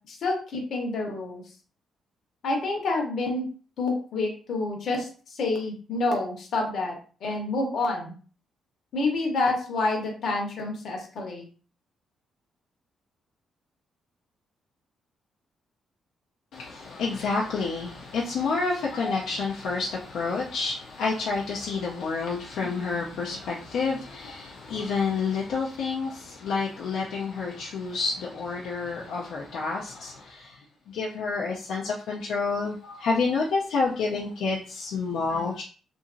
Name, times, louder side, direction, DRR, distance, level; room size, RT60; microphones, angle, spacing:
voice 1, 0.1-1.4 2.4-3.4 3.8-8.1 8.9-11.4 18.9-19.1 32.8-33.0, left 2 dB, 60° left, 1 dB, 0.9 m, -28 dB
voice 2, 16.5-30.6 30.9-35.6, left 4 dB, 80° left, -3 dB, 0.5 m, -29 dB
2.8 x 2.5 x 2.5 m, 0.39 s
cardioid pair, 135°, 0 cm